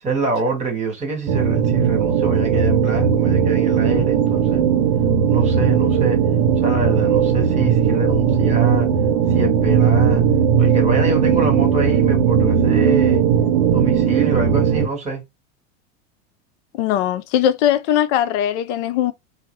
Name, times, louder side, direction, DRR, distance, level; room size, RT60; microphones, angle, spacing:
voice 1, 0.0-4.6 5.3-6.2 6.6-8.9 9.3-10.2 10.6-13.2 13.7-15.2, right 3 dB, 15° right, 1.4 m, -25 dB
sound 1, 1.3-14.9, right 7 dB, 50° right, 0.7 m, -17 dB
voice 2, 16.8-19.1, left 11 dB, 60° left, 0.6 m, -20 dB
3.2 x 2.0 x 3.2 m
hypercardioid pair, 110°, 40 cm